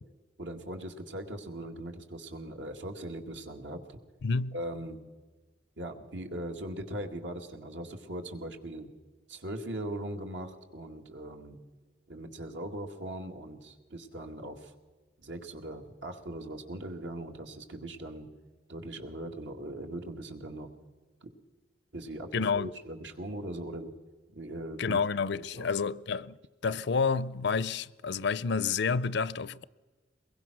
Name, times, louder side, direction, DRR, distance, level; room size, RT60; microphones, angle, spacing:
voice 1, 0.4-4.0 4.5-5.0 5.8-8.9 9.3-11.6 12.1-14.7 15.2-18.3 18.7-20.7 21.2-21.3 21.9-22.3 22.5-23.9 24.3-25.0 25.3-25.7, right 1 dB, 80° right, 2.3 m, -40 dB
voice 2, 4.2-4.6 22.3-22.7 24.8-26.4 26.6-29.6, left 5 dB, 70° left, 0.6 m, -29 dB
23.0 x 21.5 x 6.3 m
head